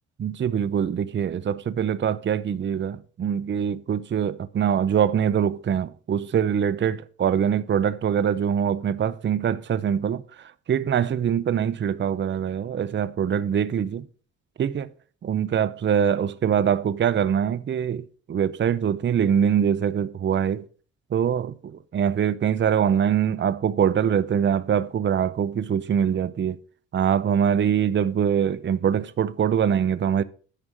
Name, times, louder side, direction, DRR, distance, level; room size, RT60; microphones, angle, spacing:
voice 1, 0.2-14.1 14.6-14.9 15.2-20.7 21.1-26.6 26.9-30.2, right 8 dB, 40° right, 0.6 m, -23 dB
9.9 x 5.4 x 6.1 m
cardioid pair, 90°, 30 cm